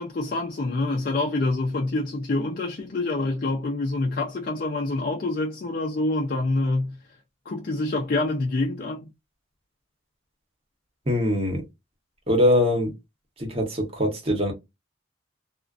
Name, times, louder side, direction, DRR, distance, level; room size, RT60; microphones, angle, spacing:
voice 1, 0.0-7.0 7.5-9.1, left 2 dB, 50° left, 0.4 m, -26 dB
voice 2, 11.1-11.6 12.3-12.9 13.4-14.5, left 1 dB, 30° right, 0.9 m, -22 dB
2.4 x 2.1 x 2.4 m
head